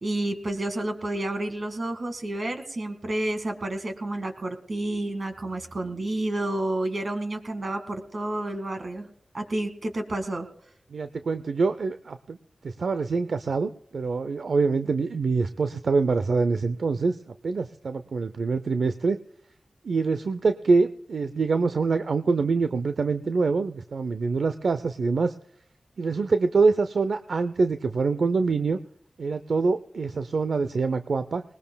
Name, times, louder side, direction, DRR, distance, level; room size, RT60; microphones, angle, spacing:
voice 1, 0.0-9.1 9.3-10.5, right 1 dB, 60° right, 6 dB, 2.1 m, -30 dB
voice 2, 10.9-12.4 12.6-19.2 19.8-25.3 26.0-28.8 29.2-31.4, right 4 dB, 80° right, 10 dB, 0.6 m, -25 dB
20.0 x 20.0 x 2.3 m, 0.69 s
cardioid pair, 50°, 0 cm